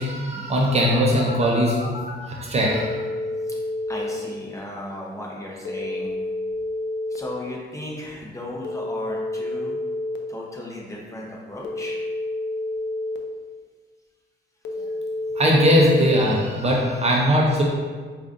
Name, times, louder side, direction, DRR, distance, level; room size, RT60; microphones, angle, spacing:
voice 1, 0.0-3.0 15.4-17.6, equal, 35° right, -2 dB, 0.6 m, -20 dB
Telephone, 1.2-2.2 2.7-4.2 5.7-7.2 8.6-10.2 11.6-13.2 14.7-16.2, left 2 dB, 65° left, 0.5 m, -29 dB
voice 2, 3.9-6.1 7.1-9.8 10.3-12.0, left 1 dB, 15° left, -3 dB, 0.7 m, -35 dB
4.8 x 2.4 x 2.5 m, 1.5 s
cardioid pair, 90°, 20 cm